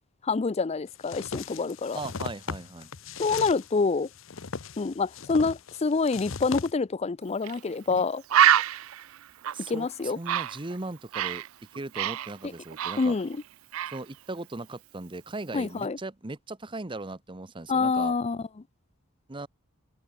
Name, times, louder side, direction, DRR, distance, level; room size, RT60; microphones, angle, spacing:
voice 1, 0.2-2.0 3.2-4.1 4.8-8.2 9.7-10.2 13.0-13.4 15.5-16.0 17.7-18.4, left 4 dB, 30° left, 0.4 m, -27 dB
sound 1, 1.0-6.7, left 5 dB, 65° left, 0.9 m, -38 dB
voice 2, 1.9-2.9 7.9-8.0 9.5-11.4 11.7-13.2 13.9-18.2 19.3-19.5, right 2 dB, 25° right, 0.9 m, -38 dB
Bird, 7.4-7.6 7.9-8.0 8.3-11.5 11.7-13.4 13.7-14.0, right 10 dB, 75° right, 0.4 m, -26 dB
head